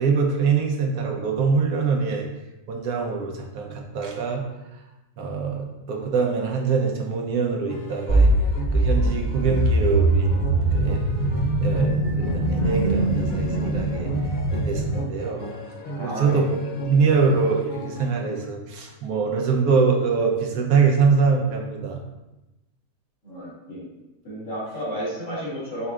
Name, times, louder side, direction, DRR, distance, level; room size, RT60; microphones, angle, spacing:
voice 1, 0.0-2.3 2.7-4.4 5.2-8.3 8.7-11.0 11.6-14.1 14.5-15.4 16.0-22.0, right 5 dB, 80° right, 1 dB, 1.2 m, -24 dB
sound 1, 7.7-18.1, equal, 85° left, 0.4 m, -37 dB
sound 2, 8.1-15.0, right 2 dB, 50° right, 0.6 m, -22 dB
voice 2, 15.9-16.6 23.2-23.9 24.2-25.9, equal, 60° left, -9 dB, 2.2 m, -32 dB
5.4 x 3.6 x 2.4 m, 0.99 s
omnidirectional pair, 1.6 m